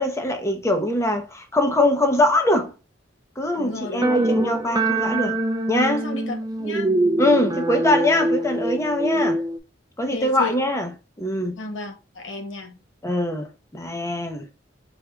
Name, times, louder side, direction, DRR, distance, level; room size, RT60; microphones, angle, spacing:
voice 1, 0.0-2.7 3.4-5.4 5.7-6.1 7.2-9.4 10.0-10.9 11.2-11.6 13.0-14.6, left 1 dB, 15° left, 0.7 m, -22 dB
voice 2, 3.6-4.3 5.9-6.9 9.1-9.2 10.1-10.6 11.6-12.8, left 3 dB, 90° left, 1.2 m, -33 dB
sound 1, 4.0-9.6, right 1 dB, 20° right, 0.5 m, -23 dB
4.2 x 3.5 x 2.3 m
head